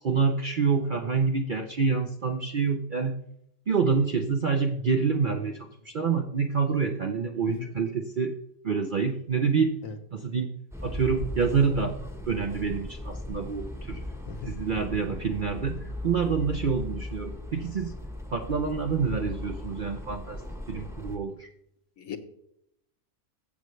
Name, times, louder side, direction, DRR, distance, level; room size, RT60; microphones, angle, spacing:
voice 1, 0.0-3.2 3.7-8.4 8.6-9.7 10.1-10.5 10.8-12.0 12.3-14.0 14.5-17.9 18.3-20.4 20.7-21.5, right 5 dB, 55° right, 4 dB, 0.6 m, -27 dB
voice 2, 7.4-7.7 9.8-9.9 14.3-14.5 22.0-22.2, left 6 dB, 65° left, 7 dB, 1.3 m, -37 dB
sound 1, 10.7-21.2, left 1 dB, ahead, 0.8 m, -38 dB
15.5 x 6.6 x 3.1 m, 0.75 s
omnidirectional pair, 1.5 m